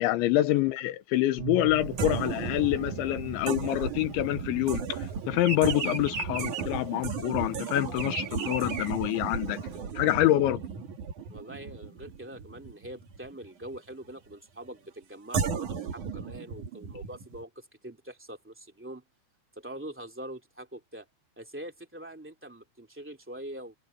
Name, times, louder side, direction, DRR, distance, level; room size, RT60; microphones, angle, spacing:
voice 1, 0.0-9.6 10.0-10.6, left 15 dB, 75° left, 3.2 m, -26 dB
sound 1, 1.4-8.4, right 16 dB, 85° right, 3.3 m, -43 dB
Bird vocalization bird call bird song, 1.8-4.7 5.0-9.7, right 4 dB, 30° right, 2.5 m, -37 dB
sound 2, 2.0-13.8 15.3-17.4, right 6 dB, 45° right, 3.1 m, -35 dB
voice 2, 11.3-19.0 19.5-21.1 21.3-23.7, right 1 dB, 5° right, 0.9 m, -43 dB
omnidirectional pair, 5.8 m